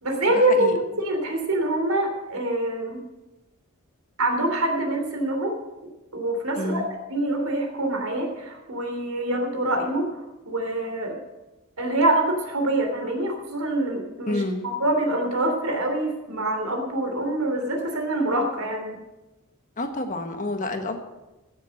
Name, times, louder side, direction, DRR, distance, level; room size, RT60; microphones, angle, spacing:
voice 1, 0.0-3.0 4.2-5.5 6.1-10.1 10.4-11.2 11.8-19.0, right 1 dB, 90° right, 3 dB, 3.2 m, -25 dB
voice 2, 6.6-6.9 14.3-14.7 19.8-21.0, left 2 dB, 35° left, 5 dB, 1.4 m, -28 dB
16.0 x 7.8 x 6.5 m, 1.0 s
head